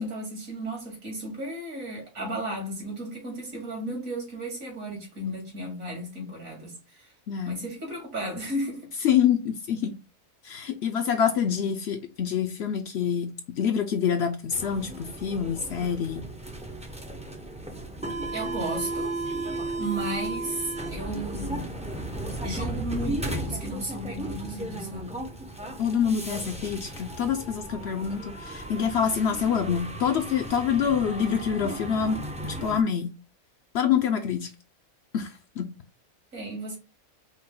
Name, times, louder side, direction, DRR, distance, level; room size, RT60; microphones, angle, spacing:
voice 1, 0.0-7.1 7.4-8.9 18.3-19.2 19.8-21.7 22.4-25.1 36.3-36.8, right 1 dB, 80° right, 2.5 m, -34 dB
voice 2, 9.0-9.9 10.4-13.3 13.6-16.2 25.8-33.1 33.7-34.5 35.1-35.3 35.6-35.7, left 7 dB, 65° left, 0.7 m, -26 dB
sound 1, 14.5-32.8, right 2 dB, 10° right, 0.3 m, -35 dB
5.3 x 2.2 x 3.7 m
omnidirectional pair, 1.4 m